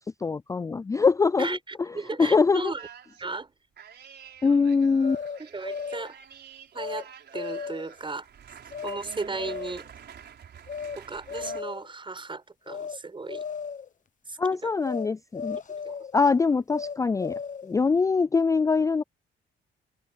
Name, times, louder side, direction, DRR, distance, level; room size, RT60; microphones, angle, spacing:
voice 1, 0.2-1.6 2.2-2.7 4.4-5.2 14.4-15.6 16.1-17.3 17.6-19.0, left 4 dB, 15° left, 0.3 m, -23 dB
voice 2, 1.4-2.8 3.2-3.5 4.4-4.9 5.4-6.2 6.7-8.3 8.8-9.9 11.0-13.4 14.3-14.7 15.7-16.0, right 3 dB, 25° right, 5.6 m, -36 dB
sound 1, 2.8-3.2 3.8-11.6, right 8 dB, 60° right, 4.6 m, -48 dB
sound 2, 5.0-6.1 6.8-7.0 7.3-7.9 8.7-9.0 9.3-9.9 10.7-11.0 11.3-11.9 12.7-13.0 13.3-13.9 14.8-15.1 15.3-16.2 16.7-17.7, left 6 dB, 40° left, 0.9 m, -35 dB
cardioid pair, 90°, 20 cm